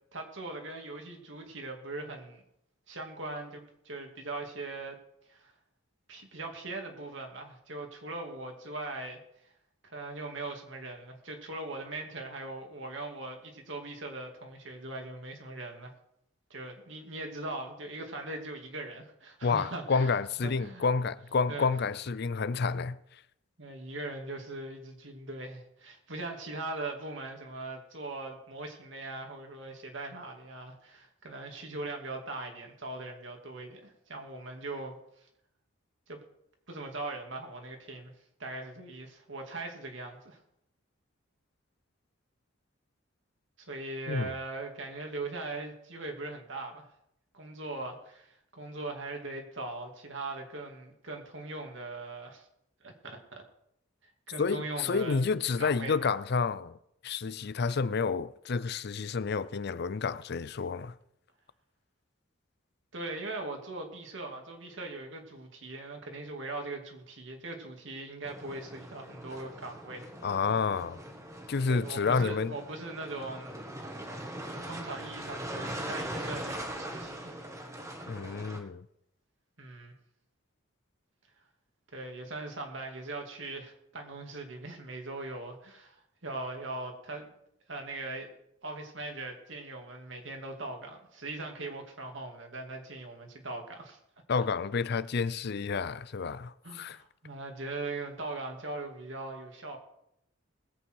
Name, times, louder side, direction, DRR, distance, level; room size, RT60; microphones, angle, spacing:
voice 1, 0.1-2.4 2.9-5.0 5.3-5.5 6.1-9.2 9.8-15.9 16.5-20.2 20.4-20.9 21.5-21.7 23.6-35.0 36.1-36.2 36.7-38.1 38.4-40.4 43.7-46.9 47.3-52.5 52.8-53.4 54.3-55.2 55.6-56.1 62.9-70.1 71.7-73.6 74.6-77.3 79.6-79.9 81.9-86.0 86.2-87.3 87.7-94.0 96.6-99.8, right 2 dB, 65° right, 2.6 m, -40 dB
voice 2, 19.4-23.0 44.1-44.3 54.4-56.8 57.0-60.9 70.2-71.0 71.5-72.5 78.1-78.9 94.3-97.0, left 5 dB, 55° left, 0.5 m, -30 dB
sound 1, 68.2-78.6, right 1 dB, 15° right, 1.6 m, -41 dB
20.5 x 8.6 x 4.7 m
head